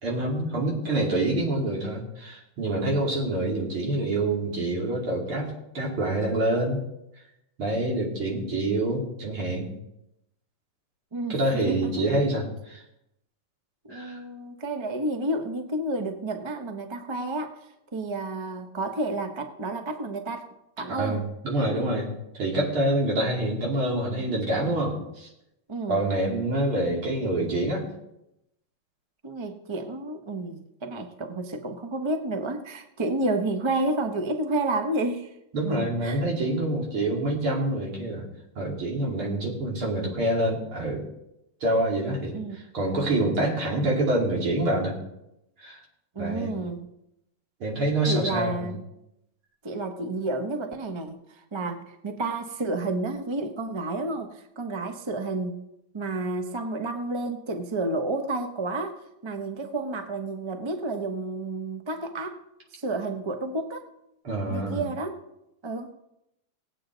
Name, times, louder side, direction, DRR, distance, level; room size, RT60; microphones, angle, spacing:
voice 1, 0.0-6.8 7.6-9.7 11.3-12.8 13.9-14.2 20.9-25.3 25.9-27.9 35.5-38.3 38.6-41.0 41.6-44.9 45.6-45.8 46.2-46.5 47.6-48.7 64.2-64.8, right 1 dB, 80° right, -2 dB, 3.8 m, -26 dB
voice 2, 11.1-12.0 13.8-17.5 17.9-20.5 20.8-21.2 25.7-26.0 29.2-35.3 35.7-36.2 42.3-42.7 46.1-46.9 48.1-48.8 49.6-55.6 55.9-62.4 62.7-63.8 64.5-65.2 65.6-65.9, right 2 dB, 30° right, 6 dB, 0.5 m, -30 dB
19.0 x 8.5 x 4.0 m, 0.84 s
omnidirectional pair, 2.3 m